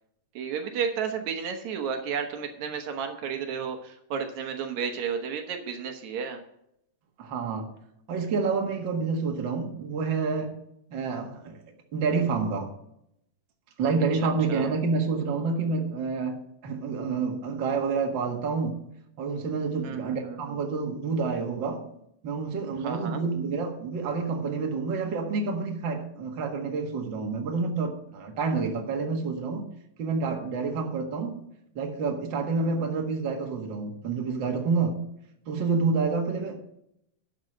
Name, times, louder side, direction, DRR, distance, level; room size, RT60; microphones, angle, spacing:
voice 1, 0.4-6.4 14.1-14.7 19.8-20.6 22.8-23.2, right 6 dB, 75° right, 5 dB, 2.4 m, -32 dB
voice 2, 7.2-7.7 8.1-10.5 10.9-11.6 11.9-12.7 13.8-18.8 19.2-21.9 22.2-29.6 30.0-31.4 31.8-35.0 35.5-36.7, right 4 dB, 45° right, 2 dB, 2.0 m, -28 dB
11.5 x 6.4 x 6.2 m, 0.77 s
omnidirectional pair, 3.3 m